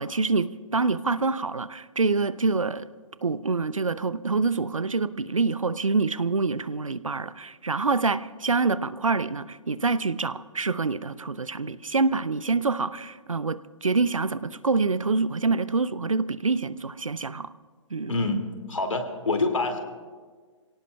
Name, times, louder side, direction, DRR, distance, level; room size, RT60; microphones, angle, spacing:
voice 1, 0.0-2.9 3.2-17.5 17.9-18.2, right 4 dB, 85° right, 15 dB, 0.6 m, -26 dB
voice 2, 18.1-18.4 18.7-19.8, left 3 dB, 75° left, 5 dB, 2.3 m, -26 dB
28.5 x 17.5 x 2.3 m, 1.5 s
figure-of-eight pair, 125°, 17 cm